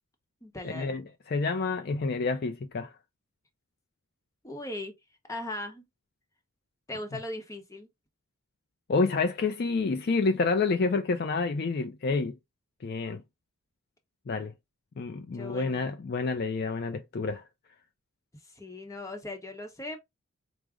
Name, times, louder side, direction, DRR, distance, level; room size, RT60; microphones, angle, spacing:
voice 1, 0.4-1.0 4.4-5.0 5.3-5.8 6.9-7.9 15.3-15.9 18.3-20.0, left 1 dB, 15° left, 0.8 m, -39 dB
voice 2, 1.3-2.9 8.9-12.4 12.8-13.2 14.3-14.5 15.0-17.4, left 4 dB, 45° left, 0.4 m, -28 dB
4.8 x 2.0 x 3.5 m
head